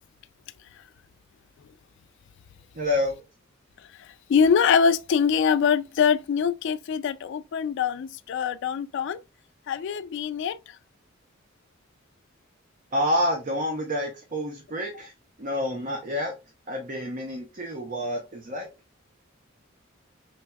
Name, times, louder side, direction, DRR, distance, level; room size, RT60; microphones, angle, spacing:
voice 1, 2.7-3.2 12.9-15.1 15.4-16.3 16.7-18.7, left 1 dB, 40° right, 0.8 m, -28 dB
voice 2, 4.3-9.2 9.7-10.6, left 6 dB, 65° left, 0.3 m, -23 dB
5.5 x 3.3 x 2.3 m
head